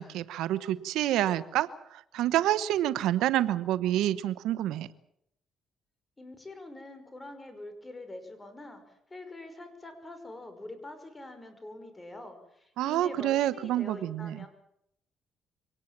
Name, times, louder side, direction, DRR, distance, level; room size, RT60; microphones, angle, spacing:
voice 1, 0.0-4.9 12.8-14.4, right 13 dB, 90° right, 15 dB, 0.9 m, -28 dB
voice 2, 6.2-14.5, left 2 dB, 20° left, 8 dB, 5.5 m, -45 dB
24.0 x 18.5 x 7.4 m, 0.75 s
cardioid pair, 90°, 0 cm